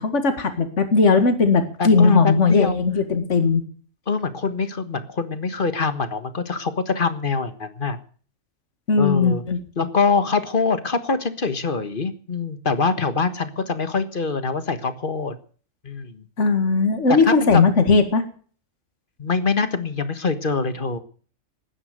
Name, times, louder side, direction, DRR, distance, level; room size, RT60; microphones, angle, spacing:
voice 1, 0.0-3.6 8.9-9.6 16.4-18.2, left 4 dB, 65° left, 8 dB, 2.3 m, -18 dB
voice 2, 1.8-2.8 4.1-8.0 9.0-9.4 9.8-15.4 15.8-16.2 17.1-17.6 19.2-21.0, left 4 dB, 40° left, 10 dB, 1.6 m, -24 dB
19.5 x 9.9 x 6.6 m, 0.44 s
omnidirectional pair, 1.3 m